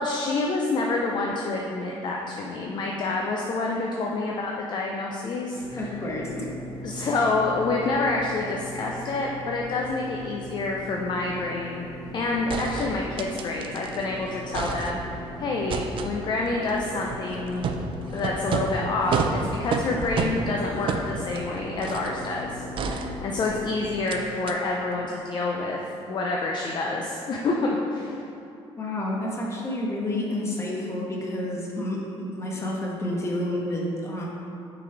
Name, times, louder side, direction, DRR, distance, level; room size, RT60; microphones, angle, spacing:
voice 1, 0.0-5.9 6.8-17.7 18.1-25.8 26.1-28.2, left 3 dB, 40° left, -1 dB, 0.5 m, -28 dB
sound 1, 5.5-24.0, left 1 dB, ahead, 1.4 m, -40 dB
voice 2, 5.8-6.5 28.8-34.3, left 1 dB, 25° left, -3 dB, 1.1 m, -29 dB
sound 2, 12.0-12.1 12.5-14.0 14.3-15.3 15.7-22.2 22.8-23.6 24.1-24.2 24.5-24.6, right 4 dB, 50° right, 0.4 m, -31 dB
5.8 x 4.1 x 4.5 m, 2.8 s
cardioid pair, 115°, 11 cm